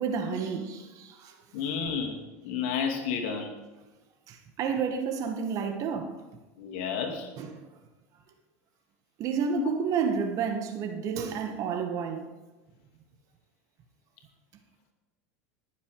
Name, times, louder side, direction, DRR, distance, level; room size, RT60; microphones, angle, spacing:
voice 1, 0.0-1.3 4.3-6.2 7.4-7.6 9.2-12.3, right 6 dB, 50° right, 1.9 m, -30 dB
voice 2, 1.5-3.5 6.6-7.3 9.5-9.7, left 6 dB, 65° left, 2.6 m, -31 dB
19.5 x 7.3 x 5.0 m
hypercardioid pair, 100°, 7 cm